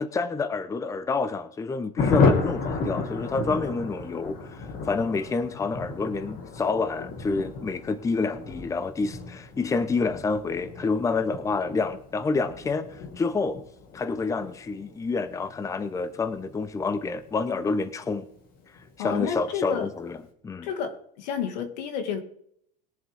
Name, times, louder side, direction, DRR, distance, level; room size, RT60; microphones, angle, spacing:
voice 1, 0.0-13.6 13.9-18.3 19.0-20.2 20.4-20.7, left 4 dB, 15° left, 0.7 m, -28 dB
Thunder, 2.0-18.1 18.4-18.5 18.8-18.9 19.2-19.6, left 4 dB, 45° left, 2.2 m, -32 dB
voice 2, 19.0-19.9 20.6-22.2, left 7 dB, 80° left, 1.9 m, -31 dB
21.5 x 7.3 x 3.5 m
supercardioid pair, 120°, 21 cm